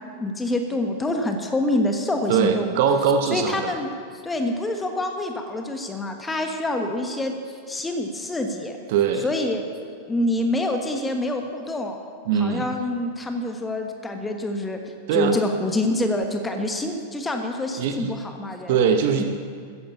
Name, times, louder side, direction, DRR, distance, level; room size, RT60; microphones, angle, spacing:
voice 1, 0.2-2.7 3.3-3.9 4.2-8.8 9.1-9.6 10.1-12.0 12.4-14.8 15.1-18.8 19.2-19.3, left 1 dB, 10° left, 4 dB, 1.3 m, -26 dB
voice 2, 2.3-3.7 8.9-9.3 12.3-12.6 15.1-15.4 17.8-18.1 18.7-19.2, right 7 dB, 50° right, 6 dB, 0.9 m, -21 dB
14.0 x 10.5 x 7.1 m, 2.2 s
figure-of-eight pair, 90°, 0 cm